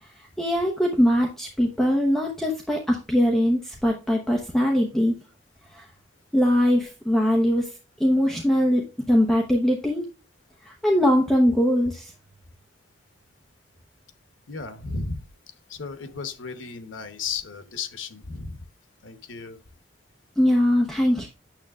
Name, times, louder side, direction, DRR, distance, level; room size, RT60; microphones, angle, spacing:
voice 1, 0.0-5.1 5.7-5.9 6.3-7.7 8.0-10.1 10.6-12.1 20.4-21.3, equal, ahead, -1 dB, 0.9 m, -22 dB
voice 2, 14.5-15.2 15.7-18.6 19.0-19.6, left 4 dB, 85° left, 9 dB, 1.0 m, -34 dB
8.8 x 6.9 x 2.4 m, 0.31 s
head